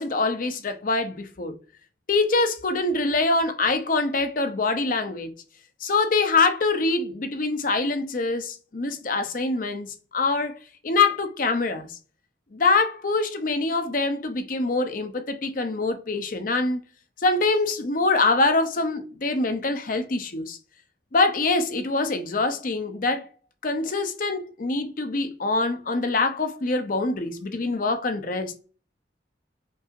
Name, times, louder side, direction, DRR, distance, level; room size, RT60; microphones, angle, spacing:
voice 1, 0.0-1.6 2.1-5.3 5.8-10.6 10.8-12.0 12.5-16.8 17.2-20.6 21.1-23.3 23.6-28.6, left 3 dB, 50° left, 0.6 m, -24 dB
5.4 x 2.7 x 2.4 m
head